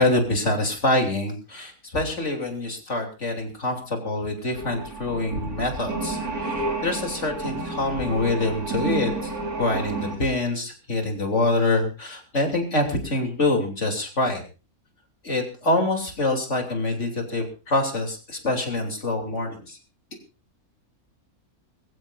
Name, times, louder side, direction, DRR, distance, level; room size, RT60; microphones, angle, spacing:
voice 1, 0.0-9.3 9.6-14.4 15.2-19.8, left 2 dB, 50° left, 3 dB, 3.4 m, -25 dB
sound 1, 4.6-10.2, right 2 dB, 80° right, 3.7 m, -30 dB
23.0 x 15.0 x 2.6 m, 0.33 s
omnidirectional pair, 1.6 m